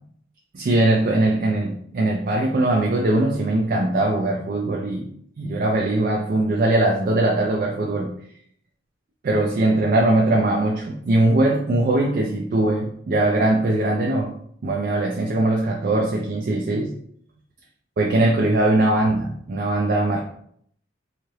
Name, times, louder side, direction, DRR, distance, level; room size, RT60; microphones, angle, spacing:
voice 1, 0.5-5.1 5.4-8.1 9.2-14.3 14.6-16.9 18.0-20.2, right 2 dB, 50° right, -1 dB, 0.4 m, -21 dB
2.7 x 2.4 x 3.1 m, 0.65 s
head